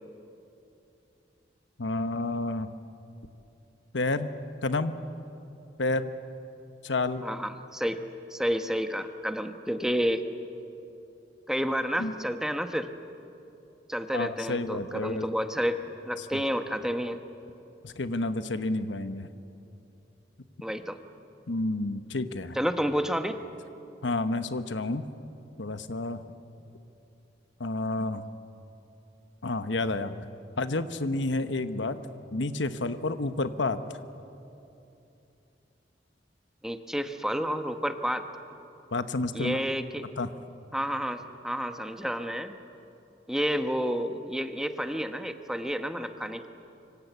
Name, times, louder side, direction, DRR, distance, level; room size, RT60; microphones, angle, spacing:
voice 1, 1.8-2.7 3.9-4.3 4.6-4.9 5.8-6.1 6.8-7.3 12.0-12.2 14.1-15.3 16.2-16.3 17.8-19.3 21.5-22.6 24.0-25.1 25.6-26.2 27.6-28.2 29.4-30.3 30.6-32.0 32.3-33.8 38.9-39.6 40.2-40.3, left 2 dB, 80° left, 10 dB, 1.1 m, -30 dB
voice 2, 7.2-8.0 8.3-10.2 11.5-12.9 13.9-17.2 20.6-21.0 22.5-23.4 36.6-38.2 39.3-40.1 40.7-42.6 43.3-46.5, equal, 5° right, 7 dB, 1.1 m, -30 dB
25.5 x 25.0 x 8.2 m, 2.8 s
head